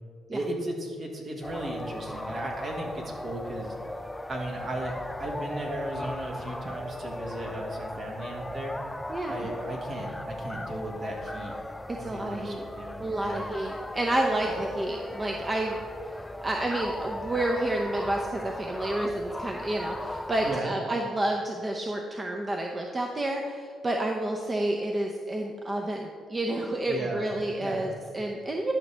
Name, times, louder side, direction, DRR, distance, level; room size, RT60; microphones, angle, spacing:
voice 1, 0.3-3.7 4.3-8.8 9.3-11.5 12.0-13.0 13.2-13.5 14.4-14.5 20.4-20.7 26.9-27.3 27.6-27.9, right 1 dB, 50° right, 1 dB, 1.7 m, -35 dB
sound 1, 1.4-20.6, left 1 dB, 10° left, 0.3 m, -37 dB
voice 2, 9.1-9.5 12.0-12.6 13.0-15.8 16.4-28.7, right 1 dB, 25° right, 1 dB, 0.7 m, -30 dB
11.5 x 6.2 x 3.4 m, 2.3 s
cardioid pair, 90°, 0 cm